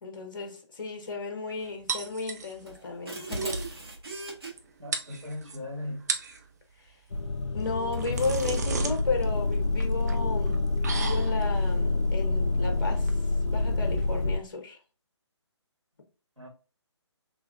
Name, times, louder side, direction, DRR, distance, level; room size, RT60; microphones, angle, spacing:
voice 1, 0.0-3.6 6.8-6.9 7.5-10.7 10.9-13.1 13.5-14.8, left 3 dB, 45° left, 1.1 m, -34 dB
sound 1, 1.9-2.8 3.1-3.2 3.4-3.7 4.6-4.7 4.9-5.6 6.0-6.4 7.6-14.2, right 5 dB, 35° right, 0.5 m, -35 dB
sound 2, 2.7-4.5 7.1-7.4 7.9-8.7, right 3 dB, 55° right, 1.9 m, -37 dB
voice 2, 4.8-6.2 16.4-16.5, left 1 dB, 90° right, 1.8 m, -38 dB
sound 3, 7.1-14.4, left 2 dB, 75° left, 0.4 m, -27 dB
3.6 x 3.4 x 2.6 m
figure-of-eight pair, 140°, 15 cm